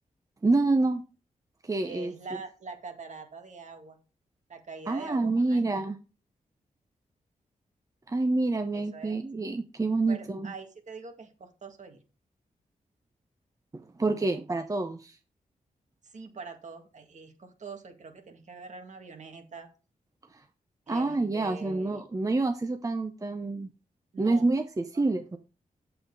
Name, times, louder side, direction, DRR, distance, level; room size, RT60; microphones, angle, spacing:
voice 1, 0.4-1.0 1.6-2.1 4.9-6.0 8.1-10.5 13.7-15.2 20.3-20.4 20.9-23.7 24.2-25.4, right 3 dB, 25° right, 7 dB, 0.8 m, -27 dB
voice 2, 1.8-4.0 4.5-5.8 8.7-9.2 10.1-12.0 16.0-19.7 20.9-22.0 24.1-24.5 24.9-25.0, right 4 dB, 60° right, 4 dB, 2.1 m, -44 dB
7.8 x 7.8 x 4.0 m, 0.33 s
cardioid pair, 85°, 14 cm